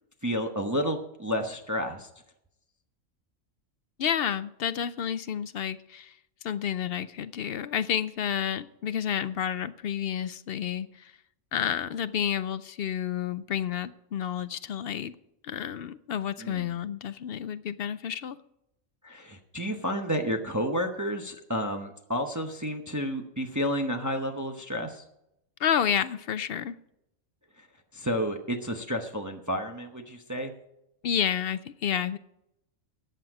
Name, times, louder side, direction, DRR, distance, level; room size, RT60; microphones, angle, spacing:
voice 1, 0.2-2.1 16.4-16.7 19.0-25.0 27.6-27.7 27.9-30.5, equal, 15° right, 3 dB, 0.9 m, -31 dB
voice 2, 4.0-6.1 6.4-11.1 11.5-15.1 15.4-18.4 25.6-26.8 31.0-32.2, left 9 dB, 60° left, 14 dB, 0.6 m, -30 dB
14.0 x 9.2 x 4.8 m, 0.82 s
omnidirectional pair, 1.4 m